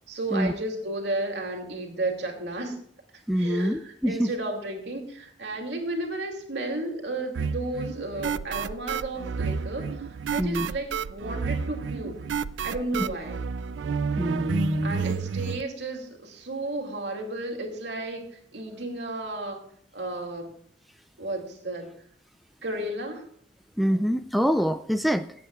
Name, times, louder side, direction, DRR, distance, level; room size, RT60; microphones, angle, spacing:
voice 1, 0.1-2.8 3.4-12.2 12.6-13.4 14.8-19.6 19.9-20.5 21.2-21.9 22.6-23.2, right 2 dB, 70° right, 2 dB, 2.7 m, -33 dB
voice 2, 3.3-4.3 10.4-10.7 14.2-15.0 23.8-25.3, equal, ahead, 8 dB, 0.3 m, -25 dB
sound 1, 7.4-15.6, right 6 dB, 90° right, 0.4 m, -30 dB
24.5 x 8.5 x 2.4 m, 0.65 s
head